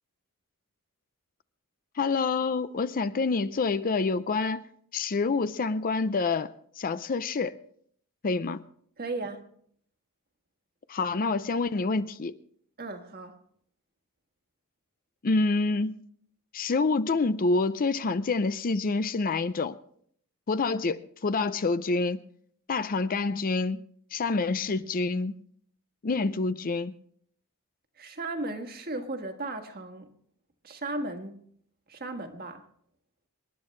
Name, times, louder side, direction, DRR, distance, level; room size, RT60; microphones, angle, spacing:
voice 1, 2.0-4.6 4.9-7.6 8.2-8.6 10.9-12.3 15.2-16.0 16.5-19.8 20.5-22.2 22.7-23.8 24.1-25.4 26.0-26.9, left 3 dB, 40° left, 0.5 m, -27 dB
voice 2, 9.0-9.5 12.8-13.4 28.0-30.1 30.6-31.4 31.9-32.6, right 2 dB, 45° right, 1.6 m, -36 dB
26.5 x 10.5 x 3.2 m
head